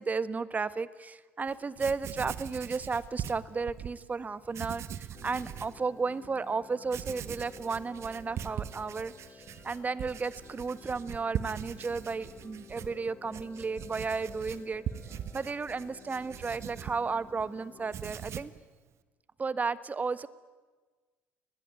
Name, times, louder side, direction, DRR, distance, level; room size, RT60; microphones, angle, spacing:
voice 1, 0.0-14.8 15.3-18.5 19.4-20.3, right 4 dB, 25° right, 16 dB, 1.4 m, -33 dB
Writing, 1.5-1.6 1.8-3.9 4.5-5.8 6.2-6.3 6.8-17.5 17.8-18.6, right 10 dB, 50° right, 1.4 m, -41 dB
sound 1, 5.1-17.9, left 6 dB, 40° left, 1.7 m, -54 dB
29.5 x 21.0 x 9.3 m, 1.3 s
hypercardioid pair, 60°, 6 cm